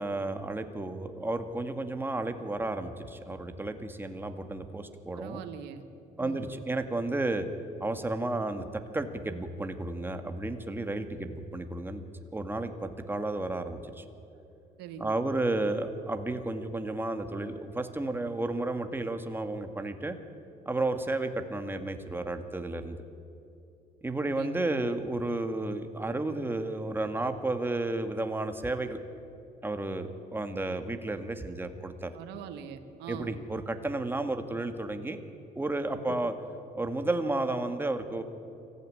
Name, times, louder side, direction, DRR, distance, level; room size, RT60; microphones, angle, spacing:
voice 1, 0.0-5.4 6.2-7.5 7.8-8.7 8.9-12.0 12.3-14.0 15.0-20.2 20.7-23.0 24.0-29.0 29.6-32.1 33.1-35.2 35.6-36.3 36.7-38.2, right 2 dB, 10° right, 7 dB, 1.9 m, -32 dB
voice 2, 5.1-5.8 6.2-6.4 14.8-15.1 24.3-24.5 32.1-33.3 36.1-36.2, right 8 dB, 85° right, 8 dB, 1.8 m, -42 dB
24.0 x 15.0 x 10.0 m, 2.8 s
cardioid pair, 110°, 17 cm